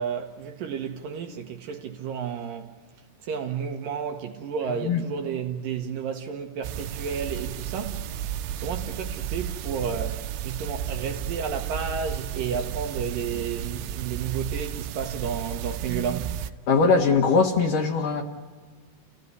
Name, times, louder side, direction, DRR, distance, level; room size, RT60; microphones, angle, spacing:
voice 1, 0.0-2.8 3.2-16.4, right 6 dB, 70° right, 2.4 m, -32 dB
sound 1, 6.6-16.5, right 10 dB, 90° right, 3.0 m, -33 dB
voice 2, 16.7-18.2, left 4 dB, 60° left, 2.6 m, -21 dB
29.5 x 16.0 x 9.5 m
omnidirectional pair, 4.8 m